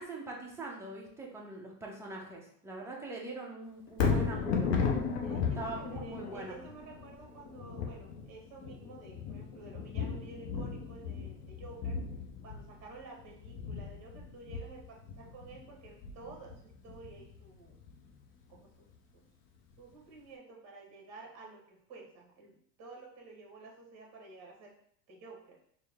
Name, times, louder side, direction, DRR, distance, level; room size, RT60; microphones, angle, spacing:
voice 1, 0.0-4.7 5.5-6.6, right 2 dB, 5° right, -3 dB, 0.7 m, -42 dB
Thunder, 3.9-18.1 18.6-18.7, left 5 dB, 35° left, 0.6 m, -36 dB
voice 2, 5.2-12.0 12.4-17.8 18.5-18.9 19.1-19.2 19.8-24.8 25.1-25.6, right 3 dB, 35° right, 0 dB, 1.3 m, -51 dB
4.3 x 2.1 x 3.5 m, 0.65 s
hypercardioid pair, 115°, 47 cm